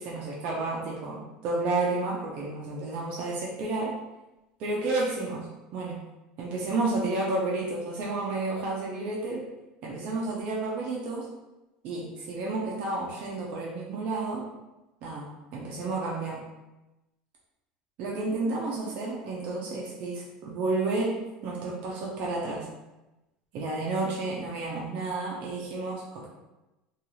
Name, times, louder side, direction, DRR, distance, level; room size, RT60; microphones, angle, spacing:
voice 1, 0.0-3.9 4.6-6.0 6.4-9.4 9.8-11.3 11.8-14.4 15.0-16.4 18.0-21.1 21.4-22.7 23.5-26.3, right 3 dB, 50° right, -3 dB, 0.5 m, -31 dB
2.4 x 2.3 x 3.0 m, 1.0 s
cardioid pair, 160°, 3 cm